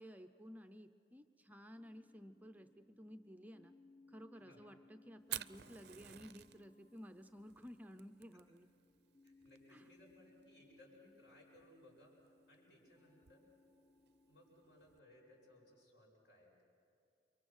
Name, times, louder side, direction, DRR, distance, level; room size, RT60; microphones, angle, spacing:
voice 1, 0.0-3.7 4.1-8.7 9.7-9.9, equal, 10° right, 7 dB, 0.5 m, -55 dB
sound 1, 1.7-15.8, left 3 dB, 35° left, 0.9 m, -68 dB
voice 2, 4.3-4.7 9.2-13.4 14.3-16.6, left 1 dB, 70° left, -2 dB, 7.9 m, -64 dB
Fire, 5.2-15.0, right 13 dB, 60° right, 0.5 m, -53 dB
29.5 x 23.5 x 6.4 m, 2.4 s
head